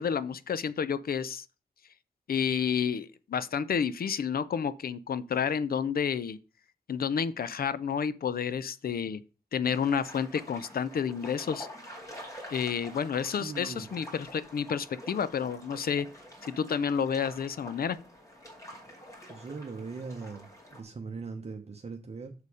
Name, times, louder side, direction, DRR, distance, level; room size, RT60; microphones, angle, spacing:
voice 1, 0.0-1.5 2.3-6.4 6.9-9.2 9.5-11.7 12.5-16.1 16.4-18.0, left 7 dB, 70° left, 0.6 m, -30 dB
sound 1, 9.6-20.8, equal, 20° left, 2.2 m, -47 dB
voice 2, 13.2-13.9 18.9-19.0 19.3-22.3, right 4 dB, 40° right, 0.9 m, -40 dB
6.8 x 6.7 x 4.9 m
wide cardioid pair, 145°, 16 cm